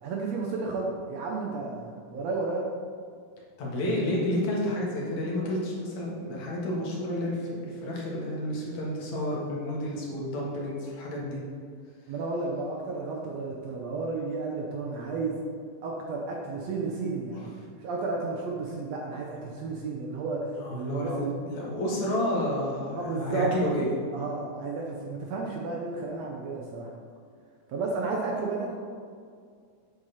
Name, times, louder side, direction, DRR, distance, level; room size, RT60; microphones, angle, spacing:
voice 1, 0.0-2.7 9.6-9.7 11.4-11.5 12.1-15.4 15.8-17.5 17.8-21.3 23.0-23.5 24.1-26.9 27.7-28.7, right 3 dB, 70° right, -1 dB, 1.8 m, -32 dB
voice 2, 3.6-11.4 17.3-17.4 20.5-23.9, left 1 dB, 65° left, -4 dB, 2.8 m, -30 dB
8.1 x 7.7 x 4.3 m, 2.2 s
omnidirectional pair, 3.7 m